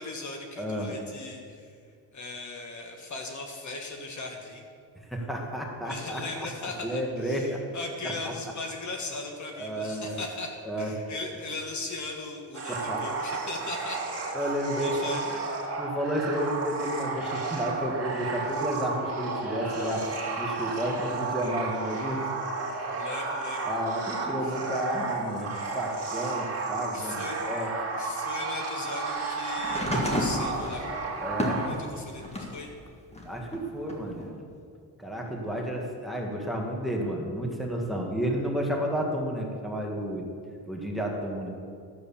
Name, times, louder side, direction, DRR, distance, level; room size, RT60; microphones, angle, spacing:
voice 1, 0.0-1.8 2.1-4.6 5.8-10.5 10.8-14.1 14.4-15.4 22.9-23.7 24.4-24.6 26.9-27.4 28.0-30.9 31.7-32.7, left 3 dB, 45° left, 2 dB, 1.4 m, -38 dB
voice 2, 0.6-1.0 5.1-7.6 8.0-8.3 9.5-10.2 10.6-10.9 12.7-13.0 14.3-15.1 15.8-20.0 20.4-22.2 23.6-27.7 31.2-31.7 33.2-34.3 35.0-40.3 40.6-41.5, equal, ahead, -1 dB, 1.7 m, -31 dB
sound 1, 12.5-31.7, right 4 dB, 35° right, 2.2 m, -32 dB
sound 2, 29.6-32.6 33.1-34.3 35.3-35.4, left 1 dB, 15° left, 1.7 m, -32 dB
12.5 x 7.8 x 7.1 m, 2.3 s
cardioid pair, 140°, 39 cm